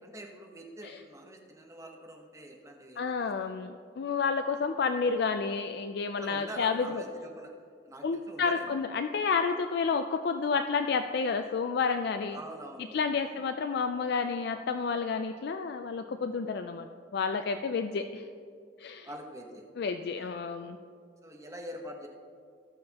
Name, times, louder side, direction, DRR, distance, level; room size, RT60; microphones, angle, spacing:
voice 1, 0.0-3.6 6.2-7.5 7.8-8.8 12.3-13.4 19.0-19.7 20.0-20.5 21.2-22.1, equal, 15° right, 1 dB, 1.0 m, -45 dB
voice 2, 3.0-7.0 8.0-12.4 12.9-16.9 17.1-18.3 18.8-19.1 19.8-20.8, left 5 dB, 60° left, 8 dB, 0.4 m, -30 dB
17.5 x 6.6 x 2.9 m, 2.2 s
head